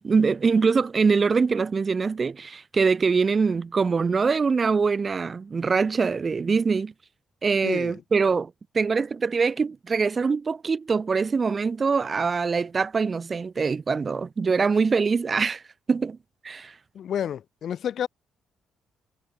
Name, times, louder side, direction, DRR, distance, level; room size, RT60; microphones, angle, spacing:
voice 1, 0.0-6.9 7.4-15.6 15.9-16.2 16.4-16.7, right 5 dB, 35° right, 2.0 m, -23 dB
voice 2, 7.6-7.9 16.9-18.1, left 9 dB, 65° left, 3.2 m, -30 dB
cardioid pair, 90°, 0 cm